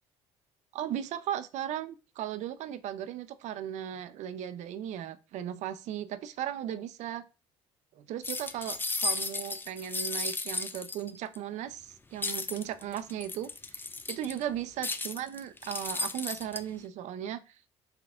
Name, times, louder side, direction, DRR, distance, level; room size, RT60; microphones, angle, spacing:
voice 1, 0.7-7.3 7.9-17.6, right 10 dB, 65° right, 0.4 m, -37 dB
sound 1, 8.2-11.4 12.2-14.4 14.8-16.6, left 3 dB, 15° left, 0.4 m, -34 dB
4.6 x 3.5 x 2.4 m
supercardioid pair, 65°, 13 cm